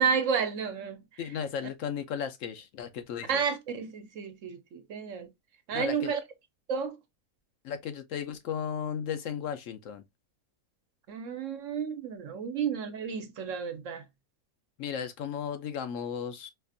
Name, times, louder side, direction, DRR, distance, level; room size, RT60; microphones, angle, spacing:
voice 1, 0.0-1.0 3.3-5.3 5.7-6.2 6.7-6.9 11.1-14.0, right 6 dB, 65° right, 1.1 m, -31 dB
voice 2, 1.2-3.4 5.7-6.1 7.6-10.0 14.8-16.5, left 8 dB, 70° left, 0.9 m, -35 dB
4.3 x 2.5 x 2.5 m
omnidirectional pair, 1.5 m